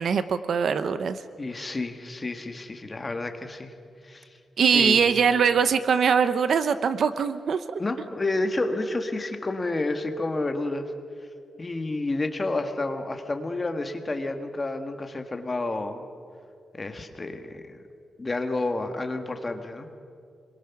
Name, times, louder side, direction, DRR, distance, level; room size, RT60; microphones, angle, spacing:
voice 1, 0.0-1.2 4.6-7.8, right 6 dB, 55° right, 12 dB, 0.8 m, -22 dB
voice 2, 1.4-3.7 4.0-4.3 4.7-5.1 7.8-10.9 11.6-16.0 16.7-17.8 18.2-19.9, left 2 dB, 20° left, 6 dB, 1.6 m, -30 dB
26.0 x 22.5 x 5.9 m, 2.3 s
wide cardioid pair, 165°, 0 cm